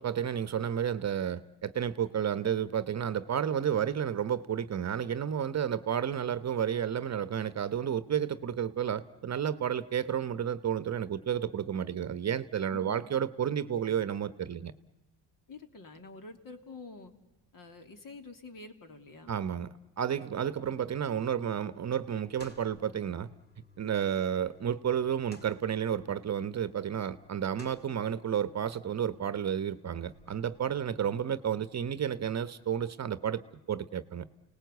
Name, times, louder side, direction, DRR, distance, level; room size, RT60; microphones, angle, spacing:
voice 1, 0.0-14.7 19.3-23.3 23.8-34.3, right 8 dB, 40° right, 14 dB, 1.1 m, -31 dB
voice 2, 12.7-13.0 15.5-17.1 17.5-19.3, left 3 dB, 50° left, 7 dB, 3.1 m, -47 dB
sound 1, 20.2-32.2, left 3 dB, 20° left, 4.5 m, -58 dB
29.5 x 19.0 x 8.2 m, 1.1 s
supercardioid pair, 85°, 43 cm